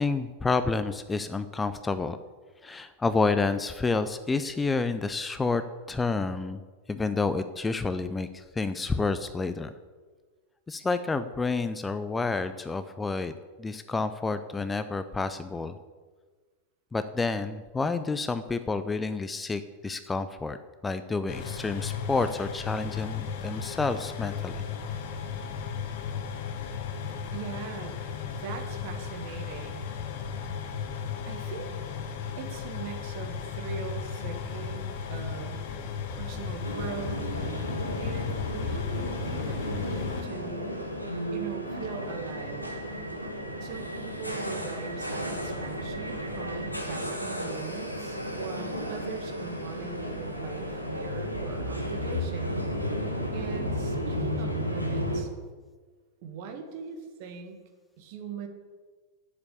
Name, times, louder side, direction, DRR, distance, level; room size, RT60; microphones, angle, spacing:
voice 1, 0.0-2.2 2.6-6.6 6.9-9.7 10.7-13.3 13.6-15.8 16.9-20.6 20.8-24.7, left 3 dB, 10° left, 11 dB, 0.5 m, -29 dB
sound 1, 21.3-40.2, left 6 dB, 50° left, 1.2 m, -35 dB
voice 2, 27.3-28.0 28.2-29.9 31.3-31.7 32.4-35.6 36.1-37.3 38.0-40.9 41.3-42.7 43.6-52.6 53.3-55.3 56.2-57.6 58.0-58.5, right 6 dB, 50° right, 5 dB, 1.7 m, -40 dB
sound 2, 36.6-55.2, equal, 90° left, 1.3 m, -33 dB
8.4 x 7.3 x 8.2 m, 1.4 s
figure-of-eight pair, 90°, 0 cm